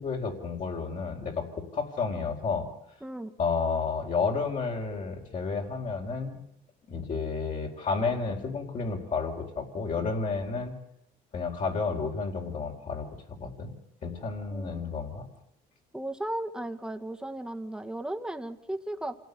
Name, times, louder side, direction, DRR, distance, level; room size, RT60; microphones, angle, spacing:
voice 1, 0.0-1.5 1.7-2.7 3.4-6.4 6.9-10.8 11.3-13.1 13.4-13.8 14.0-15.3, left 4 dB, 50° left, 0 dB, 4.6 m, -31 dB
voice 2, 3.0-3.3 14.5-14.8 15.9-19.2, right 1 dB, 5° right, 6 dB, 1.8 m, -35 dB
27.5 x 17.0 x 8.4 m, 0.77 s
cardioid pair, 110°, 17 cm